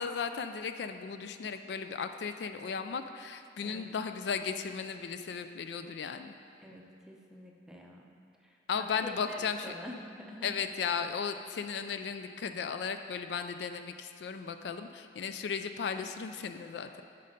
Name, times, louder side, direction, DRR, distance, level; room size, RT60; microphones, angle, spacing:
voice 1, 0.0-6.3 8.7-9.7 10.4-17.0, left 6 dB, 70° left, 8 dB, 0.3 m, -36 dB
voice 2, 6.6-8.1 8.4-10.5, left 1 dB, 5° right, -1 dB, 0.7 m, -47 dB
8.3 x 5.4 x 5.2 m, 2.4 s
head